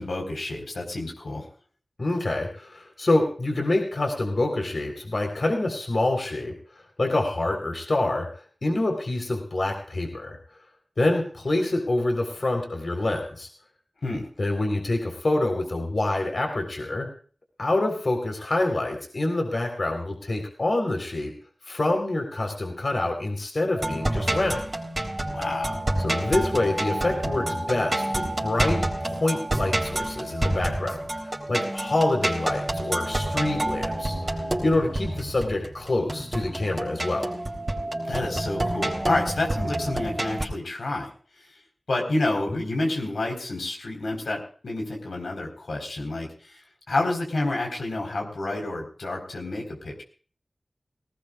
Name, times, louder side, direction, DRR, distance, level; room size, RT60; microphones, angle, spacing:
voice 1, 0.0-1.5 14.0-14.3 25.3-25.8 38.1-41.1 41.9-46.6 46.9-50.0, left 2 dB, 90° left, 1 dB, 4.4 m, -29 dB
voice 2, 2.0-6.5 7.0-8.3 8.6-10.4 11.0-13.5 14.4-17.1 17.6-21.3 21.7-24.6 26.0-37.3 42.5-42.6, left 2 dB, 60° left, 3 dB, 4.0 m, -26 dB
sound 1, 23.8-40.4, right 1 dB, 35° right, 3.7 m, -28 dB
18.5 x 18.5 x 2.5 m, 0.42 s
wide cardioid pair, 55°, 0 cm